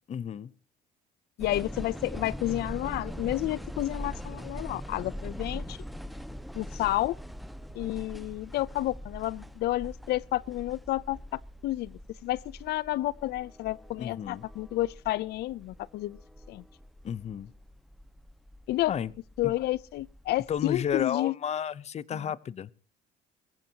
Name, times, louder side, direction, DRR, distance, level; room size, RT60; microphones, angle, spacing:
voice 1, 0.1-0.5 14.0-14.5 17.0-17.5 18.9-19.1 19.4-19.5 20.5-22.7, left 8 dB, 40° left, 0.8 m, -32 dB
voice 2, 1.4-5.8 6.5-7.2 7.7-16.2 16.5-16.6 18.7-18.9 19.4-21.3 22.1-22.2, left 16 dB, 75° left, 0.6 m, -31 dB
sound 1, 1.4-21.0, equal, ahead, 1.4 m, -42 dB
23.0 x 15.0 x 2.9 m
cardioid pair, 110°, 17 cm